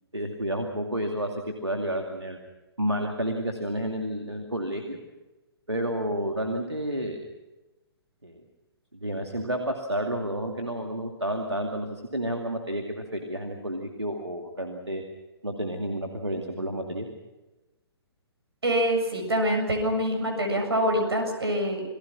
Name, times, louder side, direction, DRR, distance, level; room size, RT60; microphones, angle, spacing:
voice 1, 0.1-2.4 2.8-5.0 5.7-7.2 8.2-8.4 8.9-15.0 15.4-17.1, right 1 dB, 90° right, 3 dB, 2.5 m, -30 dB
voice 2, 18.6-21.8, equal, 70° right, 4 dB, 7.2 m, -25 dB
28.0 x 20.5 x 6.1 m, 1.1 s
figure-of-eight pair, 125°, 14 cm